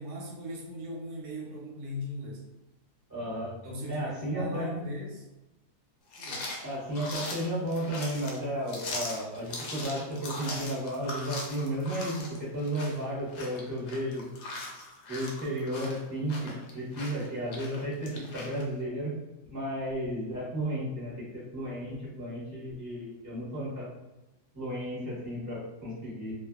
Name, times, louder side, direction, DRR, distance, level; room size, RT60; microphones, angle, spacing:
voice 1, 0.0-2.4 3.6-5.3 6.2-6.5, left 1 dB, 90° right, -2 dB, 1.3 m, -38 dB
voice 2, 3.1-3.5 3.9-4.8 6.6-14.2 15.1-19.1 19.5-23.9 24.5-26.3, right 1 dB, 15° right, -7 dB, 0.7 m, -33 dB
sound 1, 6.1-18.6, left 2 dB, 65° left, 0.8 m, -40 dB
2.6 x 2.5 x 2.3 m, 0.99 s
omnidirectional pair, 1.7 m